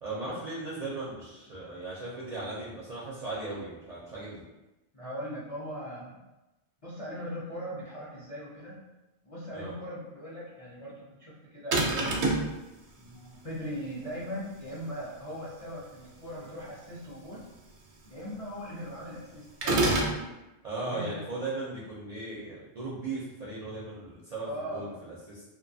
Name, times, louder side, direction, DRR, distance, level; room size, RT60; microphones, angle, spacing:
voice 1, 0.0-4.4 9.5-9.7 20.6-25.4, right 2 dB, 50° right, -7 dB, 0.5 m, -37 dB
voice 2, 4.9-6.2 6.8-8.7 9.2-12.4 13.0-17.4 18.0-20.3 20.8-21.2 24.4-24.9, equal, 45° left, -8 dB, 0.4 m, -40 dB
sound 1, 11.7-12.5 19.6-20.2, right 2 dB, 75° right, 0.8 m, -25 dB
2.5 x 2.2 x 2.6 m, 1.0 s
omnidirectional pair, 1.1 m